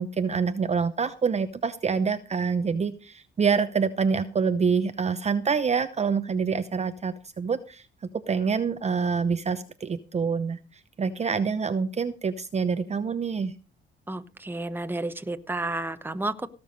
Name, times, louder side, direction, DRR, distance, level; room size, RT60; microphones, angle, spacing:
voice 1, 0.0-7.8 8.1-10.6 11.0-13.5, right 5 dB, 35° right, 11 dB, 0.8 m, -26 dB
voice 2, 14.1-16.5, right 2 dB, 10° right, 10 dB, 1.1 m, -31 dB
17.0 x 7.0 x 5.2 m, 0.35 s
cardioid pair, 90°, 20 cm